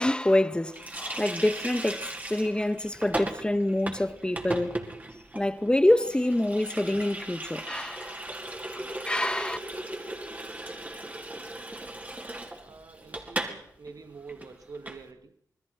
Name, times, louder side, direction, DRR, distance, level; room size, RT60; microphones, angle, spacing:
voice 1, 0.0-4.8 5.3-8.2 8.7-9.6, left 1 dB, 15° left, 1.7 m, -26 dB
Water tap faucet, 0.7-13.6 13.9-14.0 14.3-15.0, right 1 dB, 25° right, 5.1 m, -37 dB
voice 2, 12.5-15.4, right 4 dB, 60° right, 2.4 m, -46 dB
29.0 x 20.5 x 6.1 m
cardioid pair, 55°, 7 cm